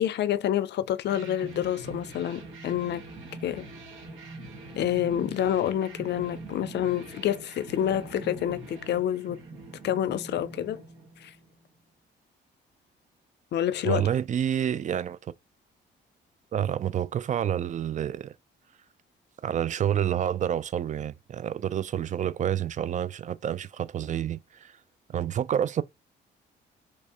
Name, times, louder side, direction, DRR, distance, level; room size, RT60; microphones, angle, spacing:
voice 1, 0.0-3.0 3.4-3.7 4.7-9.4 9.8-10.8 11.2-11.3 13.5-14.1, left 11 dB, 60° left, 0.4 m, -28 dB
sound 1, 1.1-11.6, right 2 dB, 80° right, 1.3 m, -43 dB
voice 2, 13.8-15.3 16.5-18.3 19.4-24.8 25.1-25.8, right 10 dB, 40° right, 0.4 m, -28 dB
3.1 x 2.6 x 3.5 m
cardioid pair, 90°, 20 cm